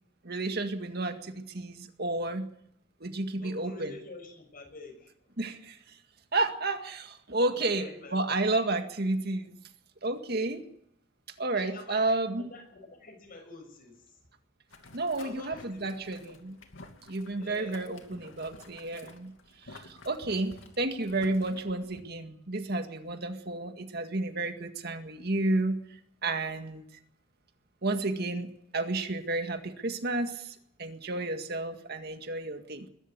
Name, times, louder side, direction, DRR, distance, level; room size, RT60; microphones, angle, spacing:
voice 1, 0.2-2.5 3.0-3.9 5.4-5.8 6.3-9.6 10.0-10.7 11.4-12.4 14.9-16.6 17.1-19.3 19.7-25.8 26.2-26.8 27.8-32.9, right 2 dB, 55° right, 6 dB, 1.9 m, -31 dB
voice 2, 3.4-5.3 7.5-8.3 11.5-14.2 15.2-16.4 17.4-17.8, left 3 dB, 50° left, 5 dB, 6.3 m, -48 dB
Boiling, 14.7-22.0, left 2 dB, 85° left, 2.5 m, -52 dB
21.5 x 12.5 x 9.5 m, 0.74 s
head